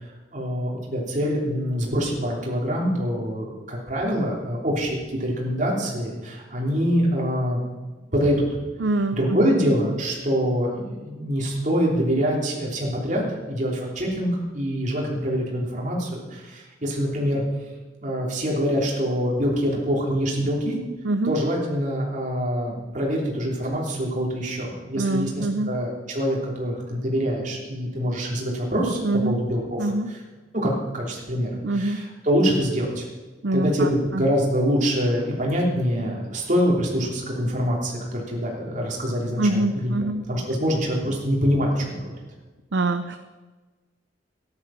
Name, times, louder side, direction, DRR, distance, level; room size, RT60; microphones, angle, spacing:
voice 1, 0.3-7.6 8.1-8.5 9.1-17.4 18.0-20.8 21.2-29.0 29.2-30.2 30.5-33.0 33.5-39.9 40.3-42.2, equal, 45° right, -2 dB, 3.3 m, -25 dB
voice 2, 8.8-9.5 21.0-21.3 24.9-25.7 29.0-29.4 29.8-30.1 31.6-32.0 33.4-33.9 34.1-34.2 39.4-40.3 42.7-43.2, right 2 dB, 70° right, 8 dB, 0.6 m, -24 dB
13.5 x 10.5 x 5.7 m, 1.3 s
head